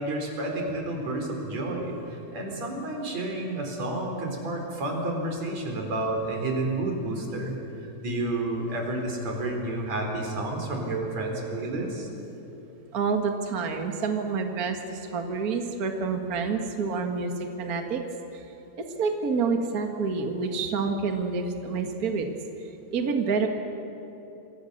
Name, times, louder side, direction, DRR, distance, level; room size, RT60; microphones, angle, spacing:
voice 1, 0.0-12.1, right 2 dB, 45° right, 1 dB, 4.9 m, -30 dB
voice 2, 12.9-18.0 18.3-18.5 18.8-22.3 22.6-23.5, right 4 dB, 85° right, 4 dB, 0.8 m, -28 dB
28.0 x 23.5 x 6.7 m, 2.9 s
omnidirectional pair, 4.7 m